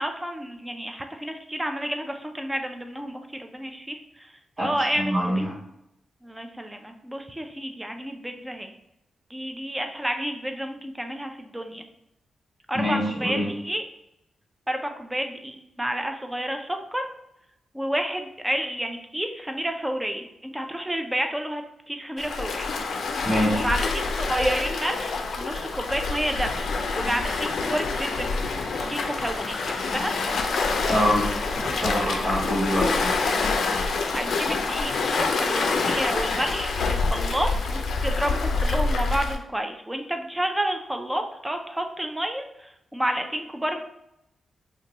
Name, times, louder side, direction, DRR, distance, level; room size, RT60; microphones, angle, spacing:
voice 1, 0.0-4.3 4.6-5.3 6.2-8.7 9.3-11.8 12.7-13.8 14.7-17.0 17.7-21.6 21.9-22.6 23.5-28.3 28.9-29.6 29.9-30.1 34.1-43.8, right 1 dB, 10° right, 5 dB, 0.4 m, -30 dB
voice 2, 4.6-5.5 12.7-13.5 23.2-23.6 30.9-31.3 31.5-33.2, equal, 40° right, -8 dB, 1.4 m, -25 dB
Waves surf, 22.2-39.4, left 4 dB, 70° left, 0.4 m, -26 dB
2.9 x 2.2 x 3.9 m, 0.82 s
cardioid pair, 105°, 0 cm